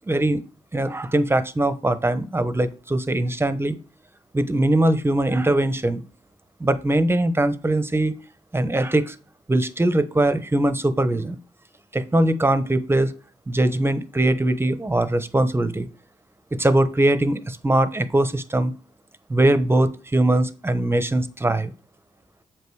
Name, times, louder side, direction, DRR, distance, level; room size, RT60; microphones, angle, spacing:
voice 1, 0.1-0.4 0.7-3.8 4.3-6.0 6.6-8.1 8.5-9.1 9.5-11.4 11.9-13.1 13.5-15.9 16.6-18.7 19.3-21.7, right 1 dB, 15° right, 12 dB, 0.9 m, -21 dB
7.5 x 5.3 x 4.7 m, 0.34 s
cardioid pair, 70°, 14 cm